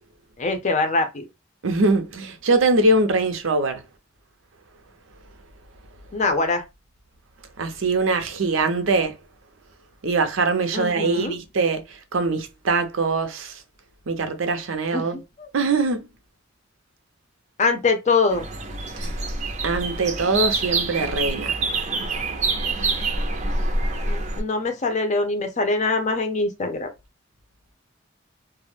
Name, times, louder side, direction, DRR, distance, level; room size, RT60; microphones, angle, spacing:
voice 1, 0.4-1.3 6.1-6.6 10.7-11.4 14.9-15.5 17.6-18.5 24.1-26.9, left 3 dB, 40° left, 0.5 m, -23 dB
voice 2, 1.6-3.8 7.6-9.2 10.0-13.6 14.1-15.2 15.5-16.1 18.9-19.1 19.6-21.6, right 3 dB, 90° right, 0.6 m, -22 dB
sound 1, 18.3-24.4, right 3 dB, 35° right, 0.5 m, -26 dB
2.3 x 2.1 x 3.1 m
head